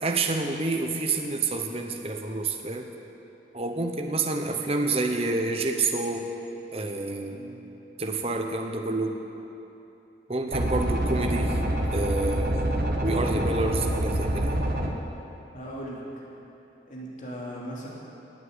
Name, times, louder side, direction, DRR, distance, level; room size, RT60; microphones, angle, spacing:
voice 1, 0.0-2.9 3.5-6.3 6.7-7.4 8.0-9.2 10.3-11.6 11.9-14.6, right 3 dB, 35° right, 3 dB, 1.0 m, -28 dB
sound 1, 10.5-14.9, right 1 dB, 55° right, 1.4 m, -26 dB
voice 2, 15.5-16.2 16.9-17.9, equal, 45° left, -4 dB, 2.9 m, -38 dB
19.5 x 8.2 x 8.1 m, 3.0 s
head